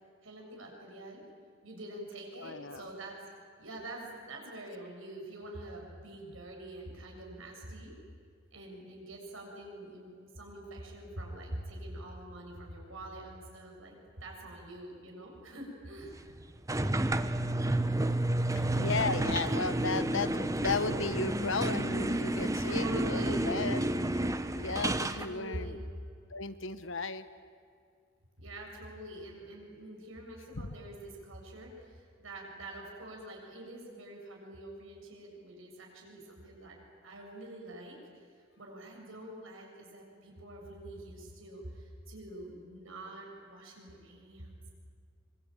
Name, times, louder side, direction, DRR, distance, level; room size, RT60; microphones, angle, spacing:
voice 1, 0.2-1.2 1.6-3.2 3.6-7.9 8.5-16.2 22.6-23.5 25.2-25.9 28.4-38.0 38.6-44.6, right 1 dB, 80° right, 0 dB, 7.1 m, -45 dB
voice 2, 2.4-2.9 18.5-23.8 24.6-25.8 26.3-27.2 30.5-30.7, left 4 dB, 70° left, 13 dB, 1.2 m, -35 dB
sound 1, 16.7-25.3, right 1 dB, 15° right, 0.9 m, -30 dB
25.5 x 23.5 x 9.0 m, 2.2 s
head